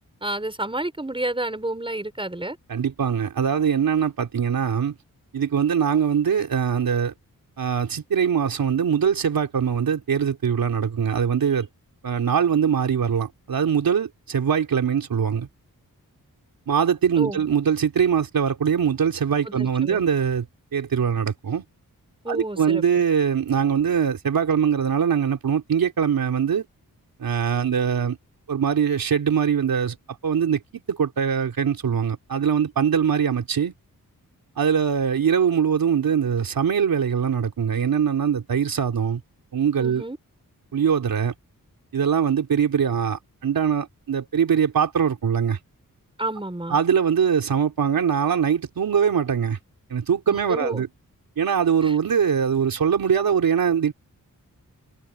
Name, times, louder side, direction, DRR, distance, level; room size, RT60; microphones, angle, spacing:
voice 1, 0.2-2.6 17.2-17.4 19.4-20.0 22.2-22.8 39.8-40.2 46.2-46.8 50.3-50.8 51.8-52.0, right 1 dB, 15° right, 6.3 m, -30 dB
voice 2, 2.7-4.9 5.3-7.1 7.6-11.7 12.0-15.5 16.7-20.5 20.7-21.6 22.3-26.6 27.2-28.2 28.5-30.0 30.2-30.6 30.9-33.7 34.6-39.2 39.5-40.0 40.7-41.3 41.9-45.6 46.7-49.6 49.9-50.9 51.4-53.9, right 7 dB, 90° right, 3.6 m, -22 dB
wide cardioid pair, 90°, 34 cm